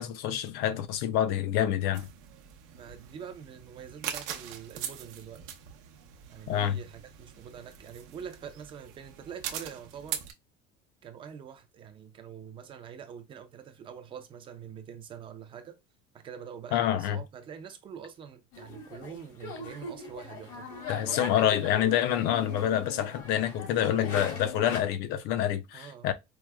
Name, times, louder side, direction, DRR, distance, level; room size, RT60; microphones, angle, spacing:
voice 1, 0.0-2.1 6.5-6.8 16.7-17.2 20.9-26.1, left 10 dB, 60° left, 0.4 m, -27 dB
sound 1, 1.9-10.3, right 9 dB, 75° right, 0.7 m, -42 dB
voice 2, 2.8-5.4 6.3-10.2 11.0-15.8 16.1-20.7 21.0-21.3 25.7-26.1, right 7 dB, 25° right, 0.4 m, -45 dB
sound 2, 18.5-24.8, left 3 dB, 75° left, 1.5 m, -41 dB
4.6 x 2.0 x 2.2 m
cardioid pair, 170°, 19 cm